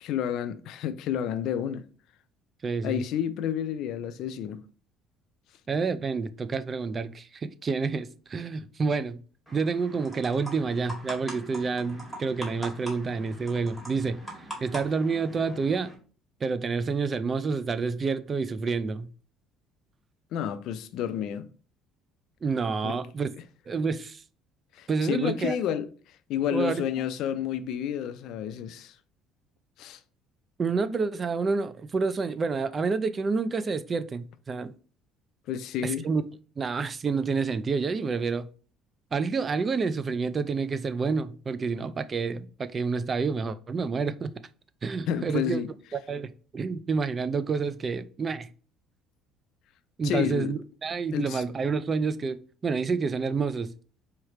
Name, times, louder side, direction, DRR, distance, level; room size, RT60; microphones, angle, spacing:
voice 1, 0.0-1.8 2.8-4.6 20.3-21.5 22.8-22.9 24.7-25.9 26.3-28.9 29.8-30.0 35.5-36.0 45.1-45.7 50.0-50.5 51.1-51.4, left 9 dB, 65° left, 0.4 m, -30 dB
voice 2, 2.6-3.0 5.7-9.2 9.5-14.2 14.6-15.9 16.4-19.1 22.4-23.3 23.7-24.2 24.9-25.6 26.5-26.8 30.6-34.7 35.8-36.2 36.6-38.5 39.1-44.3 44.8-45.6 46.1-48.5 50.0-53.7, right 4 dB, 30° right, 0.3 m, -28 dB
sound 1, 9.5-15.9, right 1 dB, ahead, 2.0 m, -42 dB
4.7 x 3.2 x 3.1 m
cardioid pair, 125°, 0 cm